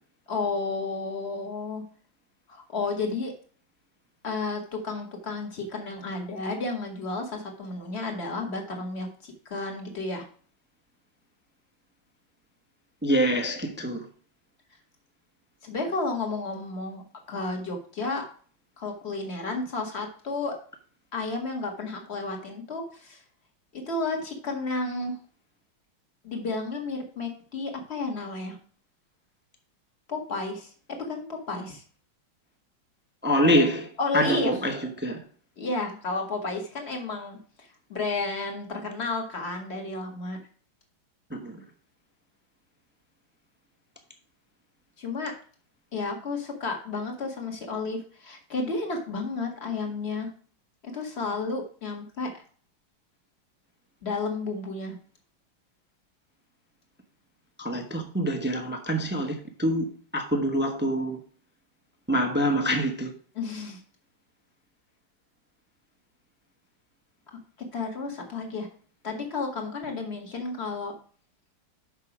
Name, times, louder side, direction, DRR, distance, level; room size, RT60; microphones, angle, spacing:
voice 1, 0.3-1.8 2.5-3.3 4.2-10.2 15.6-17.0 17.3-18.2 18.8-20.6 21.1-23.2 23.7-25.2 26.2-28.6 30.1-31.8 34.0-34.5 35.6-37.4 37.9-40.4 45.0-45.3 45.9-50.3 50.8-52.4 54.0-55.0 63.4-63.8 67.7-68.7 69.0-70.9, left 3 dB, 30° left, 1.9 m, -32 dB
voice 2, 13.0-14.1 33.2-33.9 34.1-35.2 41.3-41.6 57.6-59.9 60.1-61.2 62.1-63.1, equal, 15° right, 0.3 m, -25 dB
6.7 x 6.0 x 6.0 m
omnidirectional pair, 2.3 m